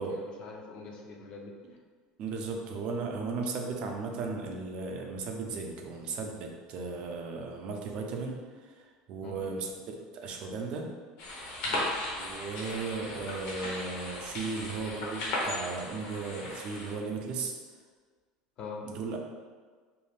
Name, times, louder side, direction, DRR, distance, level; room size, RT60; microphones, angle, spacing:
voice 1, 0.0-1.5 9.2-9.4 11.6-11.9 18.6-18.9, left 4 dB, 40° left, 0 dB, 0.4 m, -43 dB
voice 2, 2.2-9.8 10.1-10.9 12.1-17.5 18.8-19.2, right 4 dB, 50° right, 2 dB, 0.4 m, -36 dB
sound 1, 11.2-16.9, left 1 dB, 65° left, 0.8 m, -36 dB
2.5 x 2.3 x 3.2 m, 1.5 s
cardioid pair, 145°, 2 cm